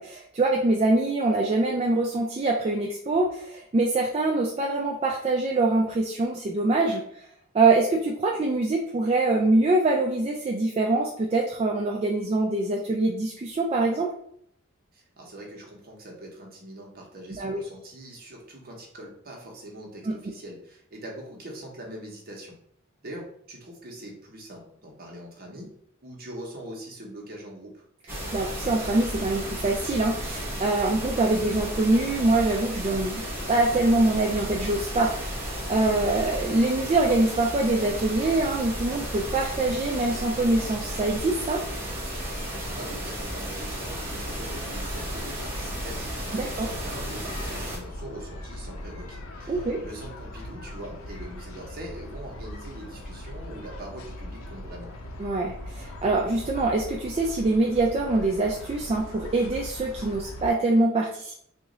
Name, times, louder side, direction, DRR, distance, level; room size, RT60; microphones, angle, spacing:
voice 1, 0.0-7.3 7.5-14.1 17.4-17.6 20.1-20.2 28.3-33.2 33.5-41.6 46.3-46.7 49.5-49.8 55.2-61.3, right 2 dB, 30° right, 0 dB, 0.4 m, -24 dB
voice 2, 14.9-22.5 23.0-27.8 42.7-54.9, right 1 dB, 45° right, -1 dB, 1.0 m, -42 dB
sound 1, 28.1-47.8, equal, 10° right, 0.8 m, -33 dB
sound 2, 43.7-60.5, left 1 dB, 90° left, 0.6 m, -40 dB
3.0 x 2.5 x 3.8 m, 0.66 s
head